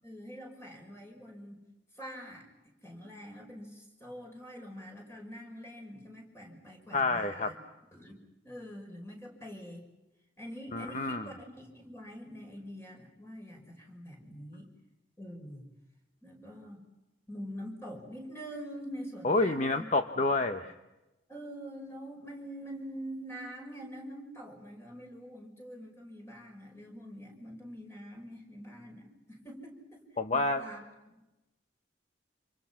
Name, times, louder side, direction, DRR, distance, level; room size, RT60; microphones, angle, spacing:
voice 1, 0.0-1.7 1.9-2.5 2.8-7.5 7.9-9.9 10.4-14.7 15.2-15.6 16.2-16.8 17.3-19.9 20.4-20.5 21.3-30.0 30.3-31.3, equal, 15° left, 1 dB, 6.0 m, -45 dB
voice 2, 6.9-7.5 10.7-11.3 19.2-20.7 30.2-30.6, left 2 dB, 40° left, 7 dB, 1.0 m, -28 dB
28.5 x 27.5 x 5.9 m, 0.99 s
head